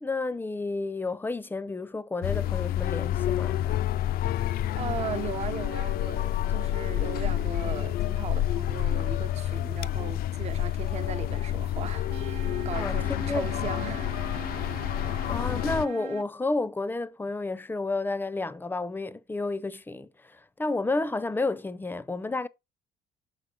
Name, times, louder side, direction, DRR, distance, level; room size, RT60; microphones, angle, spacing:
voice 1, 0.0-3.8 12.7-13.5 15.3-22.5, left 3 dB, 10° left, 0.6 m, -31 dB
sound 1, 2.2-15.9, left 12 dB, 60° left, 0.4 m, -29 dB
voice 2, 4.8-14.6, right 8 dB, 40° right, 0.7 m, -38 dB
sound 2, 12.1-16.2, right 10 dB, 80° right, 1.0 m, -42 dB
6.6 x 4.3 x 5.1 m
cardioid pair, 110°, 17 cm